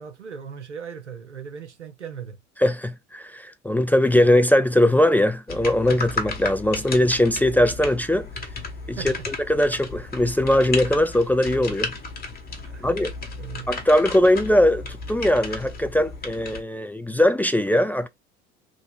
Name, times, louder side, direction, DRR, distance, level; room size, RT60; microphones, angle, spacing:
voice 1, 0.0-2.4 9.0-9.3 12.7-12.9 13.4-13.7, right 7 dB, 90° right, 0.6 m, -38 dB
voice 2, 2.6-8.3 8.9-11.9 12.8-13.1 13.7-18.1, left 1 dB, 5° left, 0.3 m, -20 dB
sound 1, 5.5-16.6, left 4 dB, 25° left, 1.3 m, -34 dB
3.1 x 2.5 x 4.0 m
figure-of-eight pair, 60°, 34 cm